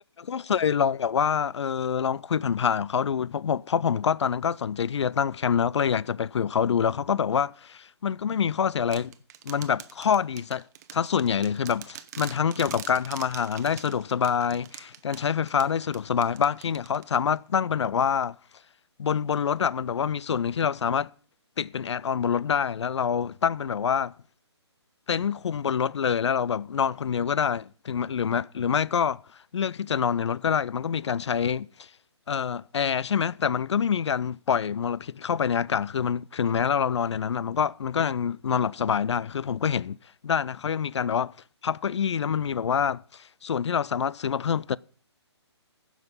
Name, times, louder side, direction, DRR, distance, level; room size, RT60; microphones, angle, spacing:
voice 1, 0.2-9.1 9.4-10.7 10.9-18.4 19.0-21.1 21.6-24.1 25.1-29.2 29.5-31.9 32.3-40.0 40.2-41.3 41.6-44.8, left 7 dB, 75° left, 0.4 m, -26 dB
sound 1, 8.9-17.4, right 11 dB, 35° right, 0.9 m, -44 dB
15.0 x 6.2 x 5.4 m
hypercardioid pair, 145°, 15 cm